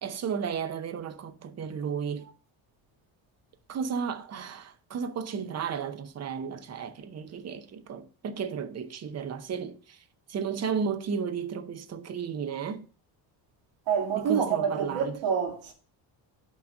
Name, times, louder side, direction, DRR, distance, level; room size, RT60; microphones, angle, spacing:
voice 1, 0.0-2.3 3.7-10.0 10.3-12.9 14.1-15.2, right 6 dB, 35° right, 0.7 m, -33 dB
voice 2, 13.9-15.7, right 7 dB, 70° right, 2.1 m, -27 dB
6.0 x 3.9 x 6.3 m
cardioid pair, 145°, 47 cm